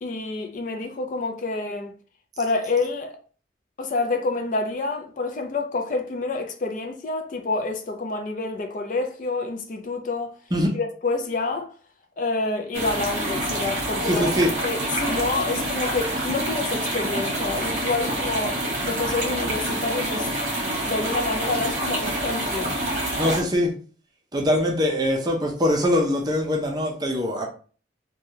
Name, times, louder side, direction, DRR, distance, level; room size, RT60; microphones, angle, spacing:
voice 1, 0.0-1.9 2.4-3.2 3.8-10.3 10.7-11.7 12.2-18.6 18.8-20.3 20.8-22.8, left 3 dB, 45° left, 0.4 m, -28 dB
sound 1, 12.7-23.4, right 1 dB, 40° right, 0.9 m, -27 dB
voice 2, 14.0-14.5 23.2-23.7 24.3-27.4, left 1 dB, 20° right, 0.5 m, -22 dB
3.2 x 2.2 x 2.7 m
head